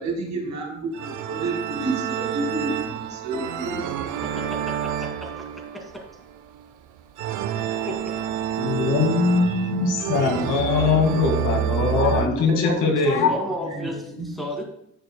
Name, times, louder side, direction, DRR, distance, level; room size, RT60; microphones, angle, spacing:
voice 1, 0.0-3.8 12.2-12.8 13.1-13.3 13.7-14.3, right 3 dB, 65° right, 1 dB, 2.3 m, -30 dB
J S Bach-Toccata and Fugue, 0.9-12.3, right 9 dB, 85° right, 0.7 m, -28 dB
voice 2, 4.4-5.3 5.8-5.9 7.8-8.1 13.0-14.6, equal, ahead, 0 dB, 2.2 m, -33 dB
voice 3, 8.6-13.3, left 4 dB, 80° left, 2 dB, 1.9 m, -21 dB
10.5 x 6.5 x 2.2 m, 0.73 s
cardioid pair, 90°, 30 cm